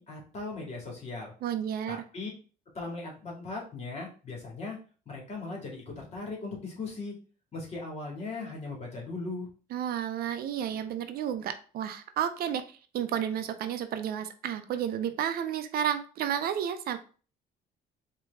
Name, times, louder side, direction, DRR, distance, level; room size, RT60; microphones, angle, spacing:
voice 1, 0.0-1.3 1.9-2.3 2.7-4.8 5.1-7.1 7.5-9.5, left 3 dB, 40° left, -1 dB, 2.2 m, -38 dB
voice 2, 1.4-2.0 9.7-17.0, right 9 dB, 65° right, 9 dB, 0.6 m, -32 dB
4.6 x 2.9 x 3.5 m, 0.38 s
cardioid pair, 110°, 17 cm